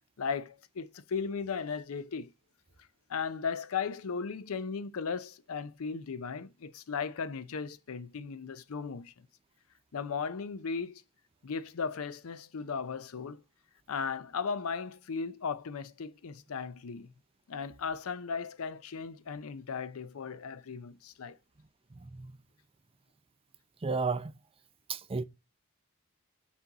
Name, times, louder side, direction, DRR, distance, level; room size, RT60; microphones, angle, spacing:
voice 1, 0.2-2.3 3.1-9.3 9.9-11.0 11.4-13.4 13.9-17.1 17.5-21.4, left 5 dB, 65° left, 0.5 m, -36 dB
voice 2, 23.8-24.3 24.9-25.2, right 4 dB, 25° right, 0.5 m, -32 dB
5.9 x 4.4 x 3.9 m
head